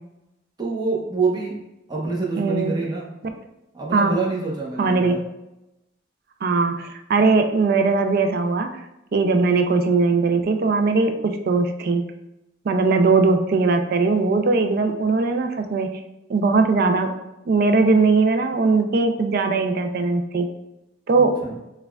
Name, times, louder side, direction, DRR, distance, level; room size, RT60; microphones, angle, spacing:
voice 1, 0.6-1.6 1.9-3.1 3.7-5.2 21.2-21.6, right 3 dB, 20° right, -3 dB, 0.8 m, -26 dB
voice 2, 2.4-2.7 3.9-4.1 4.8-5.2 6.4-8.8 9.1-12.0 12.7-15.9 16.3-17.1 17.5-20.5 21.1-21.4, right 3 dB, 50° right, 6 dB, 0.4 m, -20 dB
6.4 x 2.2 x 2.2 m, 0.93 s
head